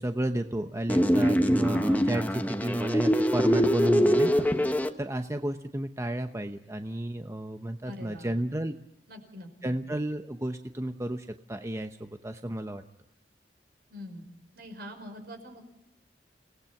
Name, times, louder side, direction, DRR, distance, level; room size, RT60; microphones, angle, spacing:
voice 1, 0.0-4.3 5.0-8.7 9.6-12.8, right 1 dB, 15° right, 7 dB, 0.8 m, -32 dB
sound 1, 0.9-4.9, equal, 10° left, 1.2 m, -24 dB
voice 2, 3.7-4.1 7.8-8.4 9.1-9.7 13.9-14.3 14.5-15.6, left 1 dB, 65° right, 6 dB, 5.2 m, -44 dB
28.0 x 18.5 x 5.9 m, 0.80 s
head